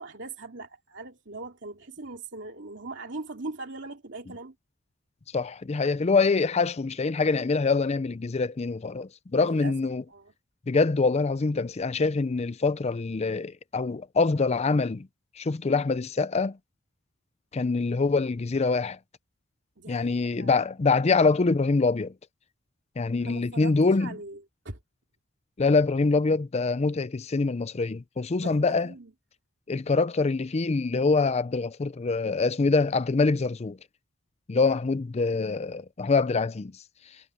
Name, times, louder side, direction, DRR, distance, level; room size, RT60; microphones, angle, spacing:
voice 1, 0.0-4.5 9.4-9.7 10.1-10.3 19.8-20.5 23.2-24.4 24.6-24.8 28.4-29.1 34.6-34.7, right 3 dB, 60° right, 2.8 m, -40 dB
voice 2, 5.3-10.0 10.7-15.1 15.4-16.6 17.5-19.0 19.9-22.1 23.0-24.2 25.6-28.9 29.7-33.8 34.5-36.8, left 4 dB, 30° left, 0.5 m, -25 dB
head